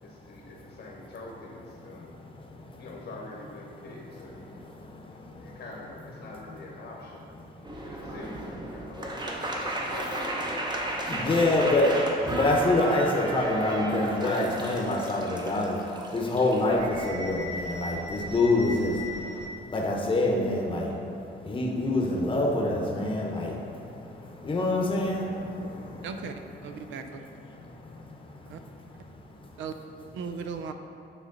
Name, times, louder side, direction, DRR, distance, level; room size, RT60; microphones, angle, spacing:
voice 1, 0.0-2.3 2.8-4.6 5.4-7.3 7.8-10.7 11.2-12.0 12.2-12.5, left 2 dB, 65° left, -3 dB, 1.1 m, -44 dB
sound 1, 7.6-19.5, right 1 dB, 20° right, 0.8 m, -34 dB
voice 2, 11.1-12.0 12.3-15.8 16.1-18.9 19.7-20.9 21.5-23.5 24.4-25.3, left 2 dB, 25° left, 0 dB, 0.9 m, -25 dB
voice 3, 26.0-26.3 26.6-27.2 28.5-28.6 29.6-29.8 30.1-30.7, right 6 dB, 70° right, 7 dB, 0.5 m, -36 dB
9.1 x 3.1 x 3.9 m, 2.6 s
cardioid pair, 90°, 20 cm